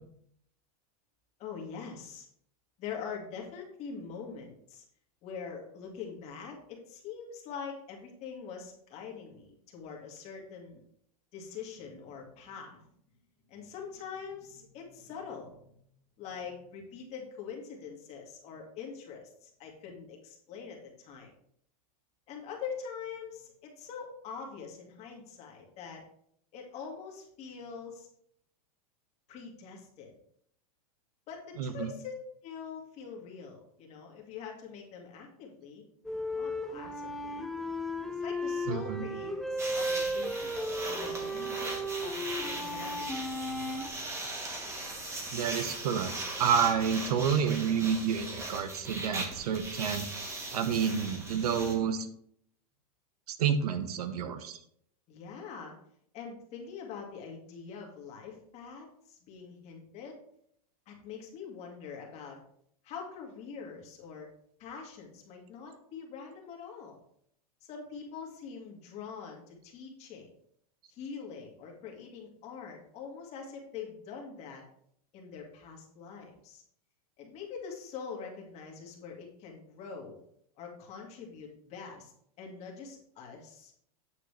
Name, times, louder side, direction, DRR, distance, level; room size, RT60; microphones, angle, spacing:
voice 1, 1.4-2.3 2.8-4.8 5.2-10.8 11.3-12.8 13.5-15.7 16.2-21.3 22.3-26.0 26.5-28.1 29.3-30.1 31.3-32.1 32.4-35.8 36.3-37.4 38.1-43.9 55.1-55.8 56.1-60.2 60.9-62.4 62.8-64.3 64.6-67.0 67.6-70.3 70.9-74.6 75.1-76.6 77.2-80.2 80.6-82.1 82.4-83.8, left 6 dB, 35° left, 0 dB, 1.9 m, -44 dB
sound 1, 36.0-43.9, equal, ahead, 0.3 m, -35 dB
voice 2, 38.7-39.1 45.3-46.1 46.4-52.1 53.3-54.6, right 7 dB, 80° right, 10 dB, 1.0 m, -29 dB
sound 2, 39.6-51.7, right 2 dB, 15° right, 1.3 m, -39 dB
8.8 x 6.5 x 3.3 m, 0.68 s
supercardioid pair, 155°, 19 cm